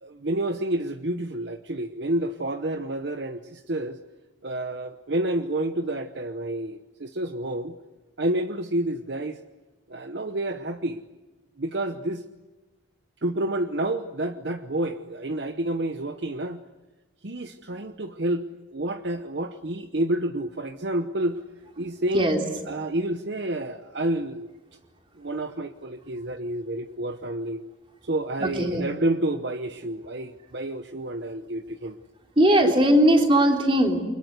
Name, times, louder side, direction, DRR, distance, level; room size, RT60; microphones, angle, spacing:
voice 1, 0.0-4.0 4.4-7.7 8.2-9.4 9.9-11.0 11.6-12.2 13.2-16.6 17.2-18.4 18.7-21.4 21.8-22.3 22.7-24.5 25.2-27.6 28.0-32.0, right 1 dB, 60° right, 8 dB, 0.9 m, -29 dB
voice 2, 28.4-28.9 32.4-34.0, right 1 dB, 25° right, 2 dB, 3.5 m, -19 dB
29.5 x 24.5 x 8.2 m, 1.1 s
head